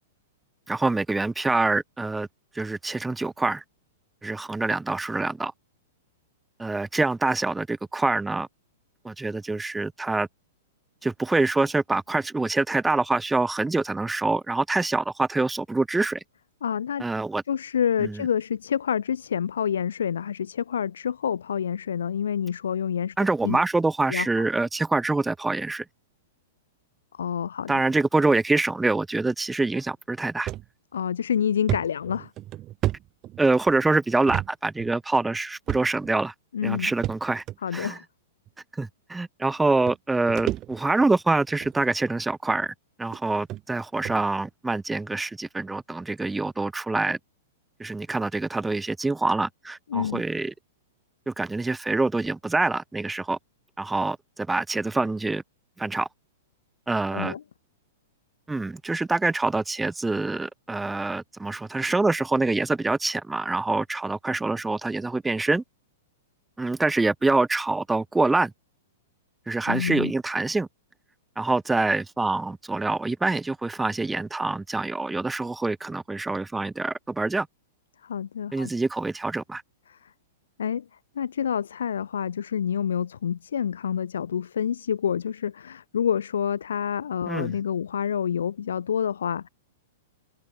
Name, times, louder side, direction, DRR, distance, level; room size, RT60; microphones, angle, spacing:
voice 1, 0.7-2.3 2.5-3.6 4.2-5.5 6.6-8.5 9.0-10.3 11.0-16.2 17.0-17.4 18.0-18.2 23.2-25.8 27.7-30.5 33.4-36.3 36.6-37.4 37.7-38.0 38.7-47.2 47.8-50.5 51.3-53.4 53.8-55.4 55.8-56.1 56.9-57.3 58.5-65.6 66.6-68.5 69.5-70.7 71.4-77.5 78.5-79.6 87.3-87.5, right 3 dB, 5° right, 3.3 m, -25 dB
voice 2, 16.6-17.0 17.5-23.2 23.4-23.6 24.1-24.4 27.1-27.8 30.9-32.3 36.5-36.9 37.6-38.0 49.9-50.2 57.1-57.4 69.7-70.1 78.0-78.7 79.9-80.1 80.6-80.9 81.1-89.5, left 8 dB, 85° left, 7.9 m, -28 dB
sound 1, 30.5-30.7 31.1-31.2 31.7-33.7 34.3-34.5 34.8-34.9 35.7-36.1 37.0-37.6 38.5-38.6 39.5-39.6 39.9-41.1 41.5-41.8 42.5-42.6 43.1-43.2 43.5-43.6 44.0-44.2, right 14 dB, 30° right, 2.3 m, -31 dB
open air
hypercardioid pair, 135°, 0 cm